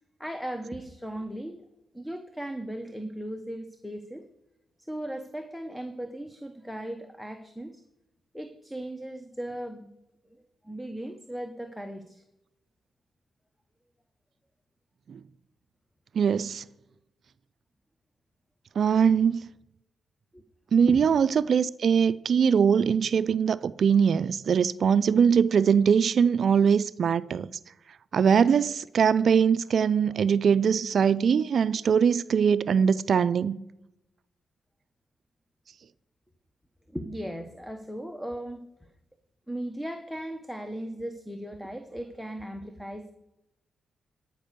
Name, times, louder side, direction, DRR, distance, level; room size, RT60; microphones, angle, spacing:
voice 1, 0.2-1.6 1.9-4.3 4.8-7.8 8.3-9.9 10.6-12.2 20.3-20.4 20.9-21.0 36.9-38.6 39.5-43.1, right 1 dB, ahead, 0.9 m, -37 dB
voice 2, 16.2-16.6 18.8-19.4 20.7-27.5 28.1-33.6, right 7 dB, 60° right, 0.3 m, -22 dB
13.0 x 5.3 x 6.7 m
cardioid pair, 95°, 0 cm